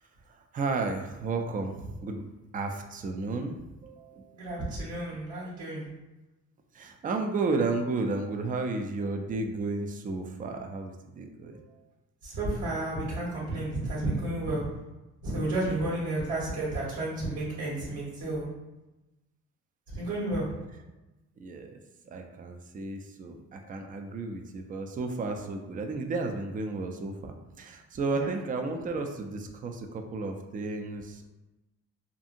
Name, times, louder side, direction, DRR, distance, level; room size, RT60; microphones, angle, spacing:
voice 1, 0.3-4.7 6.7-11.9 15.7-16.0 21.4-21.8 22.1-31.3, right 3 dB, 30° right, 4 dB, 0.3 m, -33 dB
voice 2, 4.4-5.8 12.2-14.7 15.2-18.5 19.9-20.5 28.2-28.3, right 2 dB, 85° right, -8 dB, 1.3 m, -31 dB
2.7 x 2.6 x 2.5 m, 1.0 s
cardioid pair, 90°, 30 cm